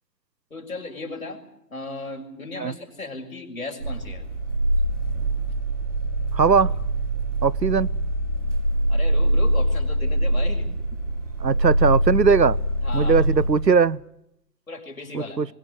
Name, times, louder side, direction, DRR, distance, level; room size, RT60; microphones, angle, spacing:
voice 1, 0.5-1.4 1.7-4.2 8.9-11.0 12.8-13.5 14.7-15.4, left 2 dB, 55° left, 6.5 m, -36 dB
sound 1, 3.8-13.7, right 1 dB, 45° right, 5.1 m, -24 dB
voice 2, 6.3-6.7 7.4-7.9 11.4-12.6 12.9-14.0 15.1-15.5, right 5 dB, 80° right, 0.9 m, -19 dB
25.0 x 22.0 x 8.1 m
figure-of-eight pair, 150°, 50 cm